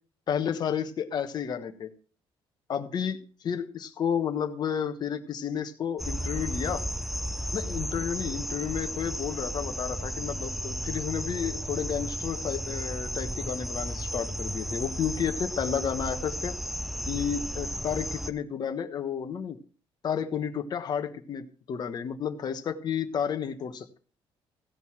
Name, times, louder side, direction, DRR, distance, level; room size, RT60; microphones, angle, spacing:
voice 1, 0.3-1.9 2.7-3.2 3.4-6.8 7.5-16.5 17.1-19.6 20.0-24.0, left 8 dB, 45° left, 7 dB, 1.3 m, -31 dB
sound 1, 6.0-18.3, equal, ahead, 0.6 m, -34 dB
16.0 x 5.4 x 6.0 m, 0.39 s
cardioid pair, 135°, 10 cm